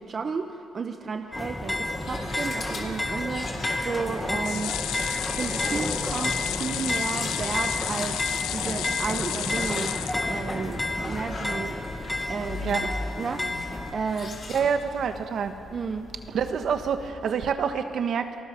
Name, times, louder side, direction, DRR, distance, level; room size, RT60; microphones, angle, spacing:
voice 1, 0.0-4.7 5.3-8.2 8.5-11.8 12.3-14.4 15.7-16.3, right 5 dB, 45° right, 6 dB, 1.0 m, -33 dB
sound 1, 1.3-13.9, left 2 dB, 15° left, 2.0 m, -31 dB
sound 2, 1.6-17.1, left 3 dB, 45° left, 3.3 m, -40 dB
sound 3, 4.4-10.7 11.2-11.3 11.6-11.7, left 13 dB, 90° left, 0.5 m, -32 dB
voice 2, 14.5-15.6 16.3-18.3, right 7 dB, 65° right, 8 dB, 1.4 m, -27 dB
28.0 x 19.0 x 5.2 m, 2.9 s
cardioid pair, 90°, 0 cm